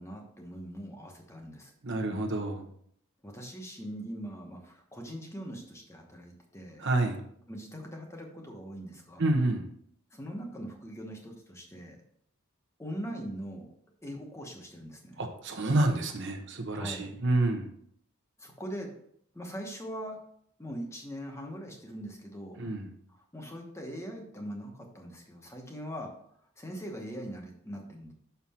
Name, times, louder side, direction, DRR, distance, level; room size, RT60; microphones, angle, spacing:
voice 1, 0.0-1.7 3.2-6.8 7.5-9.4 10.1-12.0 12.8-13.7 14.0-15.2 16.7-17.1 18.4-18.9 19.3-20.2 20.6-22.6 23.1-26.1 26.6-28.1, equal, 10° left, 1 dB, 1.0 m, -41 dB
voice 2, 1.8-2.7 6.8-7.2 9.2-9.7 15.2-17.7 22.6-22.9, right 2 dB, 55° right, 4 dB, 0.9 m, -28 dB
6.0 x 5.6 x 4.2 m, 0.66 s
head